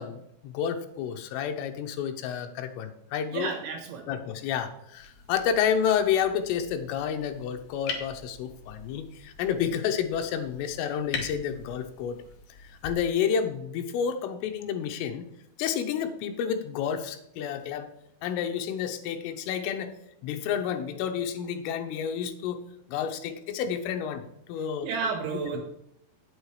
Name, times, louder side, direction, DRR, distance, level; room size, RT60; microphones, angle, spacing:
voice 1, 0.0-3.5 4.1-12.2 12.6-15.3 15.6-17.9 18.2-19.9 20.2-22.6 22.9-24.9 25.3-25.6, left 8 dB, 85° left, 6 dB, 3.4 m, -30 dB
voice 2, 3.3-4.1 24.8-25.6, right 5 dB, 70° right, 1 dB, 3.2 m, -31 dB
sound 1, 4.9-12.9, left 5 dB, 65° left, 2.4 m, -42 dB
8.9 x 8.1 x 4.8 m, 0.76 s
omnidirectional pair, 5.6 m